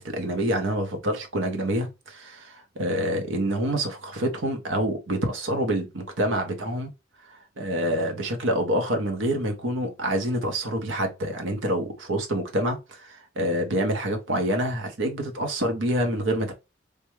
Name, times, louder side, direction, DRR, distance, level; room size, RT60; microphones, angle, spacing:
voice 1, 0.0-6.9 7.6-16.5, right 1 dB, 85° right, 0.8 m, -27 dB
3.4 x 2.2 x 3.0 m
head